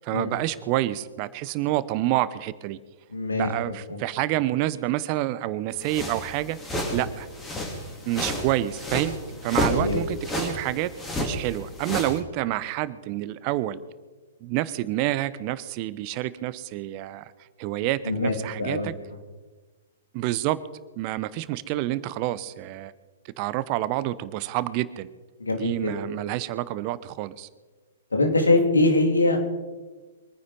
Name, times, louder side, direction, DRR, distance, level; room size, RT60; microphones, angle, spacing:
voice 1, 0.0-2.8 3.3-7.3 8.1-9.1 9.4-13.8 14.4-17.3 17.6-18.9 20.1-20.6 21.0-22.9 23.4-25.1 25.6-27.5, right 15 dB, 35° right, 17 dB, 0.8 m, -28 dB
voice 2, 3.1-3.5 3.9-4.0 9.7-10.0 18.0-18.9 25.4-25.9 28.1-29.4, left 2 dB, 80° left, 3 dB, 3.4 m, -23 dB
sound 1, 5.8-12.2, left 1 dB, 15° left, 3.7 m, -31 dB
24.0 x 9.6 x 5.4 m, 1.3 s
figure-of-eight pair, 115°, 0 cm